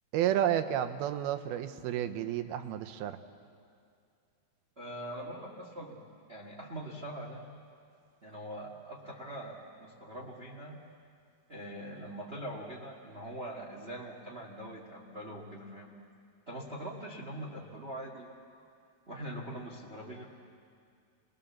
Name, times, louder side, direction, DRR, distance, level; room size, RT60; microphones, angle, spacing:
voice 1, 0.1-3.2, right 11 dB, 80° right, 9 dB, 2.8 m, -31 dB
voice 2, 4.8-7.4 8.2-10.7 11.5-15.9 16.5-18.3 19.1-20.2, right 1 dB, 55° right, -1 dB, 0.6 m, -43 dB
27.5 x 20.0 x 7.2 m, 2.3 s
omnidirectional pair, 4.4 m